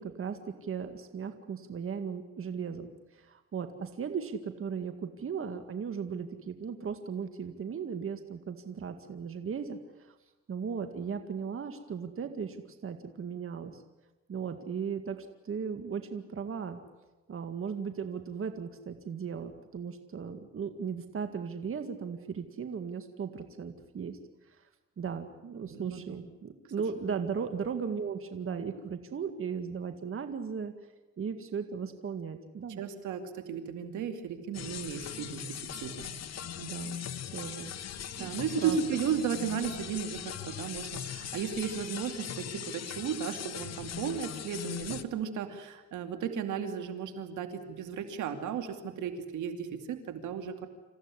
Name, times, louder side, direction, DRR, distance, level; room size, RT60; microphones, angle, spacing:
voice 1, 0.0-10.2 10.5-12.6 12.8-13.8 14.3-16.8 17.3-24.2 24.5-24.6 25.0-30.7 31.2-32.8 36.6-37.0 37.3-37.7 38.2-38.3 38.6-38.8, right 6 dB, 45° right, 7 dB, 2.0 m, -37 dB
voice 2, 25.6-26.2 32.8-36.1 38.1-50.7, right 7 dB, 80° right, 6 dB, 2.7 m, -35 dB
sound 1, 34.5-45.0, left 9 dB, 60° left, 1.3 m, -40 dB
27.0 x 15.0 x 9.9 m, 1.1 s
cardioid pair, 90°, 30 cm